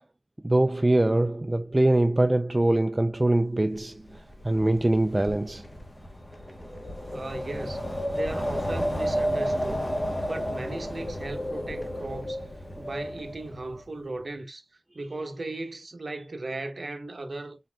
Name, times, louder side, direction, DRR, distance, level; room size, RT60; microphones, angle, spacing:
voice 1, 0.4-5.7, right 1 dB, 20° right, 0.3 m, -23 dB
Wind, 3.7-13.8, equal, 20° left, 1.0 m, -32 dB
voice 2, 7.1-9.9 10.3-12.4 12.8-14.6 14.9-17.6, right 2 dB, 45° right, 0.9 m, -37 dB
4.2 x 3.9 x 2.2 m
wide cardioid pair, 100°, 0 cm